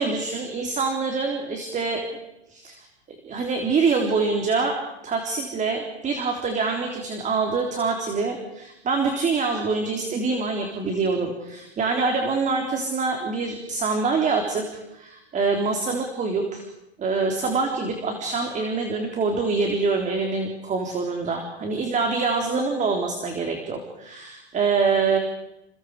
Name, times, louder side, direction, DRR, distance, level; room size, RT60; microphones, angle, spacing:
voice 1, 0.0-2.1 2.5-2.8 3.2-4.8 5.0-16.7 17.0-25.2, right 4 dB, 20° right, 3 dB, 3.9 m, -25 dB
29.5 x 29.0 x 5.0 m, 0.92 s
hypercardioid pair, 125°, 33 cm